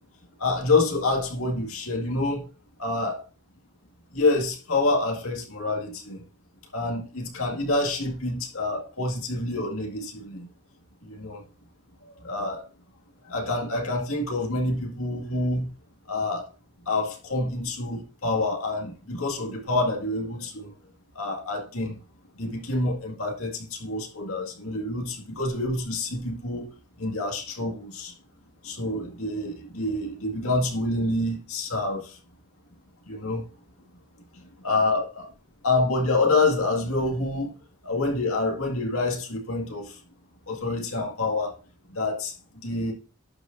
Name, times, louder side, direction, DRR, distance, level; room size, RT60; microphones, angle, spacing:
voice 1, 0.4-2.4 2.8-3.2 4.1-6.2 6.7-10.5 11.0-11.4 12.2-12.6 13.2-15.7 16.1-16.5 16.9-20.7 21.2-22.0 22.4-26.7 27.0-28.1 28.6-32.2 33.1-33.4 34.3-35.3 35.6-37.5 37.8-40.0 40.5-41.5 41.9-42.9, left 2 dB, 75° left, 2.0 m, -27 dB
11.5 x 6.3 x 2.6 m
head